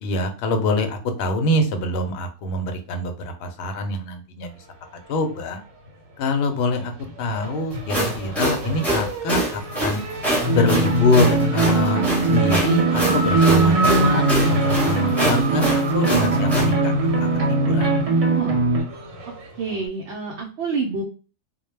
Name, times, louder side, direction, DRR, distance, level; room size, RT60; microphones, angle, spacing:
voice 1, 0.0-3.1 3.4-4.5 5.1-5.6 6.2-6.9 7.2-10.0 10.5-17.9, left 2 dB, 65° left, 6 dB, 0.7 m, -25 dB
Race car auto racing / Accelerating revving vroom, 4.9-5.9 6.2-19.9, right 1 dB, 85° right, 1.1 m, -30 dB
sound 1, 7.7-16.7, right 1 dB, ahead, 0.6 m, -25 dB
sound 2, 10.4-18.8, right 2 dB, 45° right, 0.5 m, -20 dB
voice 2, 18.1-18.6 19.6-21.0, right 4 dB, 70° right, -1 dB, 0.8 m, -28 dB
2.2 x 2.1 x 3.1 m, 0.37 s
omnidirectional pair, 1.3 m